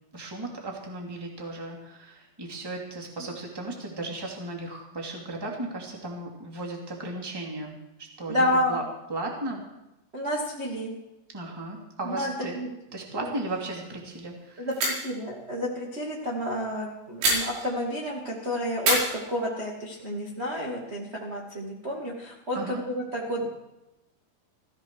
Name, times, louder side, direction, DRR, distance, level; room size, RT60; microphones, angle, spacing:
voice 1, 0.1-8.8 9.1-9.6 11.3-12.5 12.9-14.7 22.5-22.8, right 2 dB, 10° right, 0 dB, 1.6 m, -36 dB
voice 2, 8.3-8.8 10.1-10.9 12.0-12.7 13.1-13.3 14.6-23.5, left 1 dB, 25° right, -4 dB, 1.4 m, -30 dB
sound 1, 13.5-13.9 14.1-14.2 14.7-15.2 17.2-18.1 18.8-19.9, right 2 dB, 85° right, 7.1 m, -29 dB
18.0 x 15.5 x 4.8 m, 0.93 s
omnidirectional pair, 5.3 m